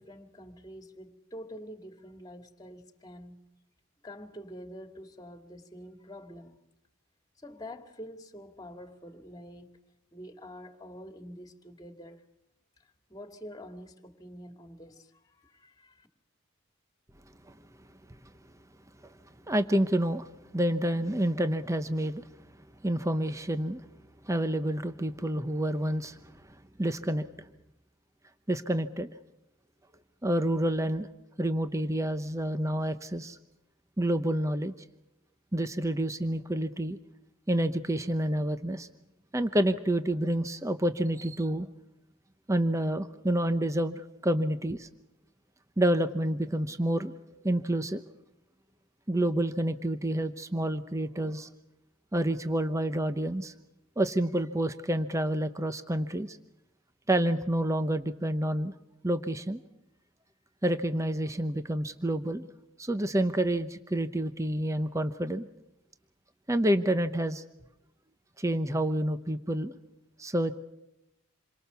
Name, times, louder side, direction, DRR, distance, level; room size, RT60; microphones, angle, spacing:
voice 1, 0.0-3.4 4.0-6.6 7.4-9.7 10.1-12.2 13.1-16.1, equal, 20° left, 2.3 m, -46 dB
voice 2, 19.5-22.2 22.8-23.8 24.2-26.3 26.8-27.5 28.5-29.1 30.2-31.1 31.4-33.4 34.0-34.7 35.5-37.0 37.5-38.9 39.3-41.7 42.5-44.9 45.8-47.1 47.4-48.0 49.1-51.5 52.1-53.5 54.0-56.4 57.1-58.7 59.0-59.6 60.6-62.5 62.8-65.5 66.5-67.4 68.4-69.7 70.2-70.5, right 1 dB, 15° right, 0.8 m, -28 dB
28.0 x 23.5 x 7.0 m
head